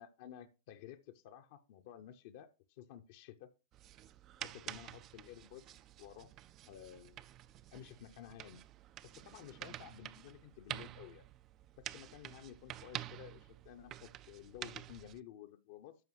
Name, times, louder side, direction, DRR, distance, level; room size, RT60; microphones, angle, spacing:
voice 1, 0.0-3.5 4.4-6.3 6.7-7.2 7.7-8.7 9.2-11.2 11.8-16.0, left 11 dB, 50° left, 0.6 m, -53 dB
sound 1, 3.7-15.2, right 12 dB, 30° right, 0.3 m, -49 dB
12.5 x 4.8 x 3.1 m
figure-of-eight pair, 95°, 0 cm